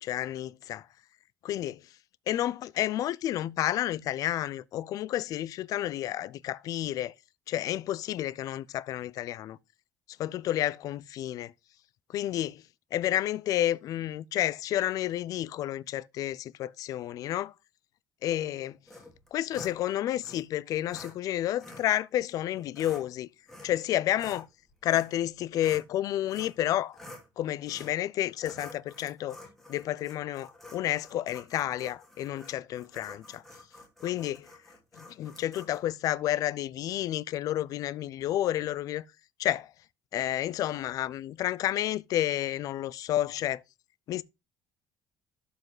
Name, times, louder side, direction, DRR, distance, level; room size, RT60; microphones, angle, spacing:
voice 1, 0.0-0.8 1.4-1.8 2.3-7.1 7.5-9.6 10.2-11.5 12.1-12.6 12.9-17.5 18.2-18.8 19.3-23.3 23.6-24.5 24.8-27.0 27.4-29.4 29.7-33.4 34.0-34.5 35.0-39.0 39.4-39.7 40.1-43.6 44.1-44.2, left 13 dB, 50° left, 0.5 m, -30 dB
sound 1, 18.9-19.8 20.2-20.4 20.9-21.1 21.6-21.9 22.6-23.0 23.5-23.8 24.1-25.9 26.3-26.6 26.9-27.3 27.7-28.0 28.4-35.8, left 1 dB, 5° left, 2.8 m, -49 dB
12.0 x 5.6 x 4.0 m
cardioid pair, 165°, 8 cm